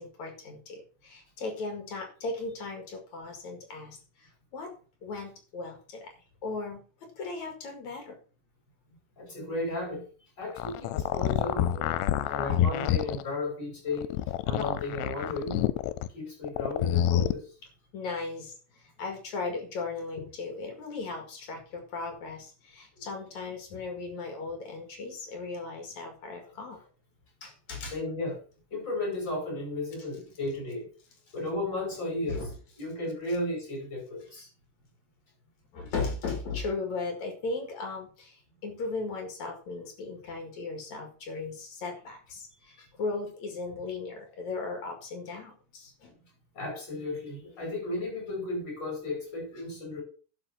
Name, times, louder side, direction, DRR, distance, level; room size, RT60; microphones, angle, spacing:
voice 1, 0.0-4.7 5.0-6.1 6.4-6.8 7.2-8.2 12.8-12.9 17.9-26.8 27.4-27.9 32.3-32.5 35.7-46.1, left 3 dB, 50° left, 4 dB, 2.8 m, -37 dB
voice 2, 9.2-10.0 10.4-14.1 14.4-15.7 16.1-17.5 22.9-23.0 27.9-28.4 28.7-30.9 31.3-32.5 32.8-34.5 46.5-50.0, left 2 dB, 25° left, -2 dB, 6.4 m, -34 dB
sound 1, 10.4-13.2 13.9-16.1 16.4-17.3, left 12 dB, 85° left, 2.7 m, -27 dB
11.5 x 5.3 x 5.8 m, 0.38 s
omnidirectional pair, 4.7 m